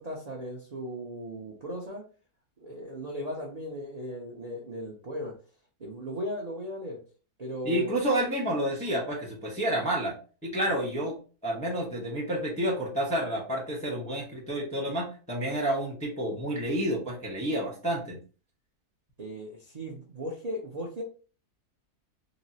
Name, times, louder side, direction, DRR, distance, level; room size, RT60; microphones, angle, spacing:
voice 1, 0.0-2.0 2.6-5.3 5.8-7.0 7.4-8.0 19.2-21.0, equal, 45° right, -3 dB, 0.5 m, -37 dB
voice 2, 7.6-10.2 10.4-11.2 11.4-18.2, right 1 dB, 5° left, -3 dB, 0.5 m, -29 dB
3.9 x 2.0 x 2.7 m, 0.37 s
omnidirectional pair, 1.6 m